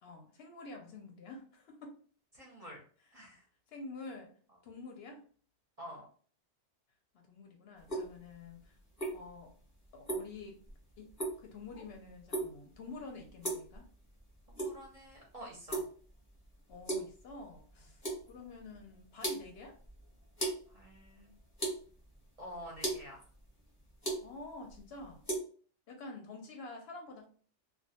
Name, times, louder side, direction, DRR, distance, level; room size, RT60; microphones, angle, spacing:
voice 1, 0.0-2.0 3.7-4.3 4.6-5.2 7.1-8.8 9.1-9.5 9.9-10.6 11.0-13.9 16.7-19.8 24.2-25.2 25.9-27.3, left 3 dB, 65° left, 2 dB, 0.7 m, -48 dB
voice 2, 2.3-2.8 3.1-3.4 5.8-6.0 14.5-15.8 20.7-21.3 22.4-23.3, equal, 40° right, -2 dB, 0.6 m, -48 dB
sound 1, 7.8-25.4, right 2 dB, 15° left, 0.8 m, -41 dB
2.2 x 2.2 x 2.7 m, 0.43 s
omnidirectional pair, 1.2 m